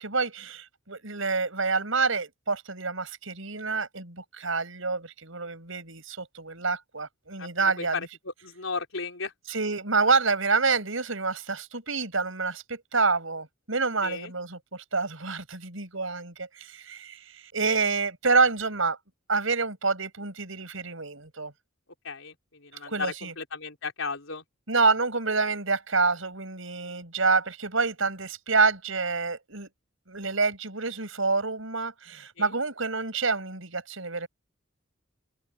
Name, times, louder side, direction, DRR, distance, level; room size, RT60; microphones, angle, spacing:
voice 1, 0.0-8.0 9.5-19.0 19.3-21.5 22.8-23.3 24.7-29.7 30.1-34.3, right 4 dB, 75° right, 5.4 m, -27 dB
voice 2, 7.4-9.3 14.0-14.3 22.0-24.4 32.4-32.5, left 4 dB, 80° left, 4.2 m, -35 dB
open air
head